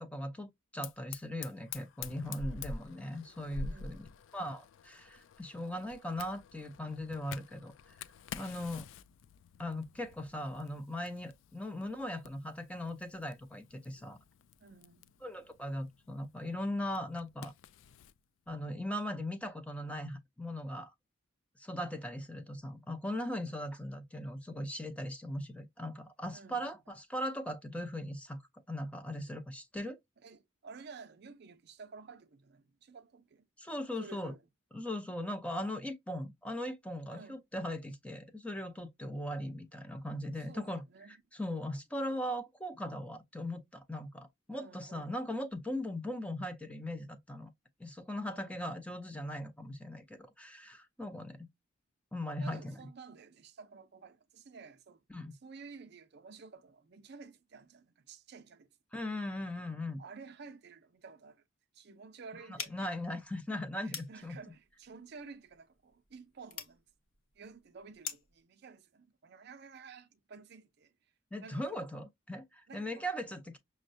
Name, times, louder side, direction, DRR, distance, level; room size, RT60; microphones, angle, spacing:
voice 1, 0.0-4.1 4.3-7.7 8.3-8.8 9.6-14.2 15.2-17.5 18.5-20.9 21.6-28.4 28.7-30.0 33.6-34.3 34.7-47.5 47.8-51.4 52.1-52.8 55.1-55.4 58.9-60.0 62.5-64.4 71.3-73.6, left 1 dB, 5° left, 0.5 m, -39 dB
Fire, 0.8-18.2, left 4 dB, 65° left, 0.3 m, -48 dB
voice 2, 3.7-4.1 8.4-8.7 14.6-15.2 23.5-23.7 26.3-26.7 30.2-33.5 34.0-34.4 37.1-37.4 40.3-41.2 44.5-45.2 48.3-48.7 52.4-55.0 55.4-58.7 60.0-61.4 61.7-62.9 63.8-66.8 67.3-70.9 71.4-71.9 72.7-73.1, right 4 dB, 55° right, 0.5 m, -52 dB
sound 1, 62.5-68.4, left 7 dB, 85° left, 1.0 m, -47 dB
6.1 x 2.1 x 2.6 m
head